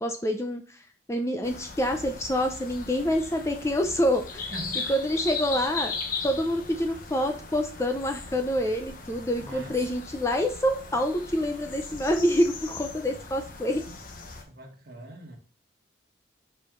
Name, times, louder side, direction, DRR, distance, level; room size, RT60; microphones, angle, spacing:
voice 1, 0.0-4.5 4.9-6.0 6.2-13.8, equal, 15° left, 5 dB, 0.5 m, -27 dB
sound 1, 1.4-14.4, left 4 dB, 45° left, 1.0 m, -38 dB
voice 2, 4.5-5.0 9.4-9.9 14.5-15.4, right 1 dB, 50° right, 1 dB, 1.5 m, -42 dB
5.3 x 4.7 x 3.8 m, 0.39 s
head